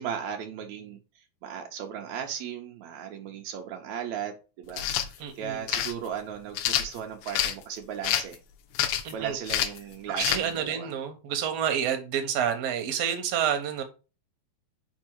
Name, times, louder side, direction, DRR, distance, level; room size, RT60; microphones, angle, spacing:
voice 1, 0.0-8.4 9.1-10.9, right 8 dB, 90° right, 1.6 m, -36 dB
sound 1, 4.7-5.1 5.7-5.9 6.6-7.6 8.0-8.4 8.8-9.1 9.5-9.8 10.2-10.4, left 11 dB, 85° left, 1.8 m, -27 dB
voice 2, 5.2-5.6 9.0-9.4 10.1-13.8, right 9 dB, 70° right, 1.6 m, -29 dB
5.4 x 4.5 x 4.6 m
omnidirectional pair, 4.2 m